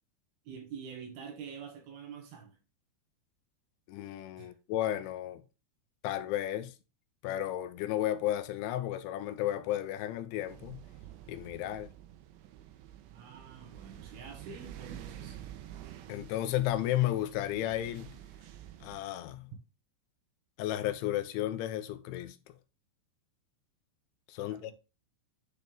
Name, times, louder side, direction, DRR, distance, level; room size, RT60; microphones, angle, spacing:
voice 1, 0.4-2.6 4.4-4.5 13.1-15.4 24.4-24.7, right 6 dB, 65° right, 2.9 m, -46 dB
voice 2, 3.9-5.4 6.0-6.7 7.2-10.8 11.3-11.9 16.1-18.1 18.8-19.5 20.6-22.4 24.3-24.7, left 13 dB, 80° left, 3.1 m, -33 dB
sound 1, 10.5-19.0, right 11 dB, 85° right, 3.3 m, -49 dB
10.5 x 4.2 x 3.4 m
omnidirectional pair, 5.4 m